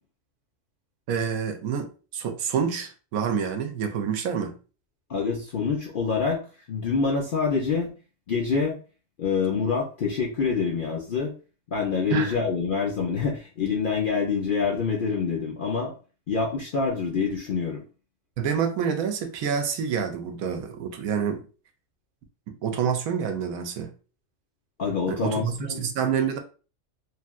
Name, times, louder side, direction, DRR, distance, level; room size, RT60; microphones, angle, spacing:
voice 1, 1.1-4.6 12.1-12.4 18.4-21.4 22.6-23.9 25.1-26.4, right 7 dB, 85° right, 1.1 m, -27 dB
voice 2, 5.1-6.4 6.7-7.9 8.3-8.8 9.2-11.3 11.7-15.9 16.3-17.8 24.8-25.9, left 5 dB, 60° left, 0.5 m, -26 dB
3.2 x 2.6 x 2.3 m
omnidirectional pair, 1.5 m